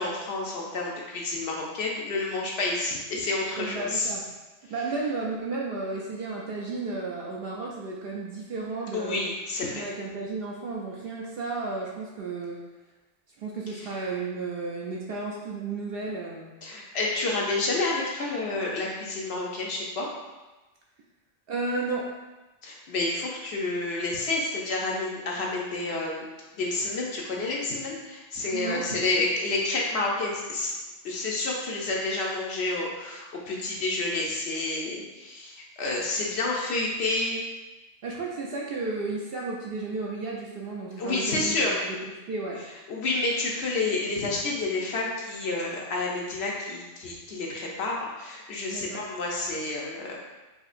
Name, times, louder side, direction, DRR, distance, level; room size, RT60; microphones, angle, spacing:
voice 1, 0.0-4.1 8.9-9.8 13.7-13.9 16.6-20.1 22.6-26.3 26.5-30.7 31.0-37.4 41.0-41.8 42.9-50.2, left 2 dB, 65° left, -2 dB, 0.8 m, -29 dB
voice 2, 3.6-4.2 4.7-9.2 9.7-12.6 13.4-16.5 21.5-22.1 28.5-29.3 38.0-42.0 42.3-42.6 48.7-49.0, right 3 dB, 65° right, -3 dB, 0.6 m, -33 dB
4.2 x 2.8 x 2.4 m, 1.2 s
omnidirectional pair, 1.3 m